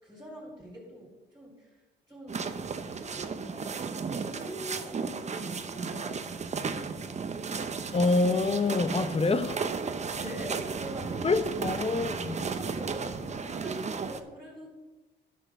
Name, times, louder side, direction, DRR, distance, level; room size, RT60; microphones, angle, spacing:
voice 1, 0.0-2.5 2.8-3.8 4.1-7.3 10.1-11.3 12.4-14.8, equal, 15° right, 3.4 m, -44 dB
sound 1, 2.3-14.2, right 5 dB, 35° right, 0.8 m, -34 dB
voice 2, 7.9-9.6 11.2-12.5, left 3 dB, 30° left, 0.8 m, -26 dB
10.0 x 6.1 x 6.0 m
cardioid pair, 90°, 20 cm